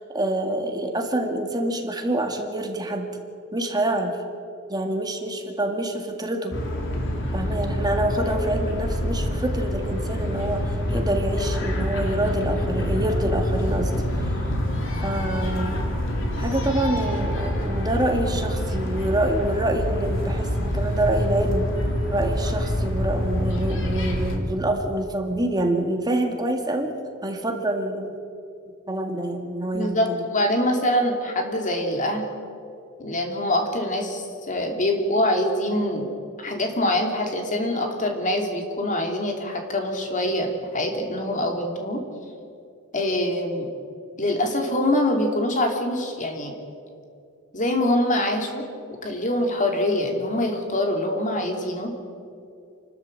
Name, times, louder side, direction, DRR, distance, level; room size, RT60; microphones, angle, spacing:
voice 1, 0.1-3.1 3.5-4.2 4.7-6.5 7.3-13.9 14.9-15.9 16.4-21.7 22.1-26.9 27.2-28.1 28.9-30.2, right 1 dB, 20° right, 3 dB, 2.0 m, -26 dB
sound 1, 6.5-24.4, equal, 60° left, 3.1 m, -26 dB
voice 2, 29.7-32.2 33.0-36.1 36.4-42.0 42.9-43.7 44.2-46.5 47.5-48.6 48.9-51.9, left 1 dB, 35° left, 3 dB, 2.8 m, -24 dB
28.0 x 13.0 x 7.7 m, 2.5 s
head